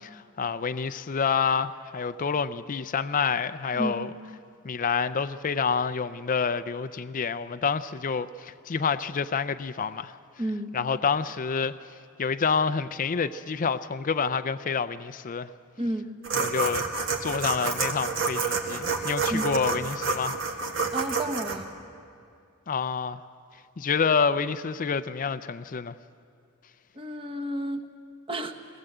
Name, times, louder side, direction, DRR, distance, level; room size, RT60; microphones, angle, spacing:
voice 1, 0.4-4.1 4.6-10.2 10.7-11.7 12.2-15.5 16.3-16.8 17.2-20.3 22.7-23.2 23.8-26.0, left 5 dB, 40° left, 0.4 m, -28 dB
voice 2, 10.4-10.7 15.8-16.1 19.3-19.5 20.9-21.7 26.9-27.9 28.3-28.5, right 1 dB, 25° right, 1.1 m, -31 dB
sound 1, 16.2-21.6, right 4 dB, 60° right, 2.0 m, -28 dB
21.5 x 19.0 x 7.9 m
head